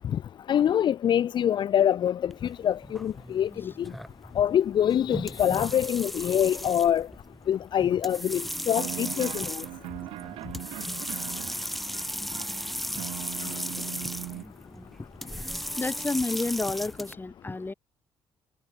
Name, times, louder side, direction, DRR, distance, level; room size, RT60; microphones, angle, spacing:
voice 1, 0.5-2.3 2.6-3.5 4.4-7.1 7.5-9.5, left 10 dB, 55° left, 0.8 m, -24 dB
sound 1, 2.3-17.1, equal, ahead, 2.4 m, -36 dB
sound 2, 8.7-14.4, right 17 dB, 75° right, 4.4 m, -40 dB
voice 2, 15.8-17.7, left 3 dB, 20° left, 4.2 m, -30 dB
supercardioid pair, 65°, 9 cm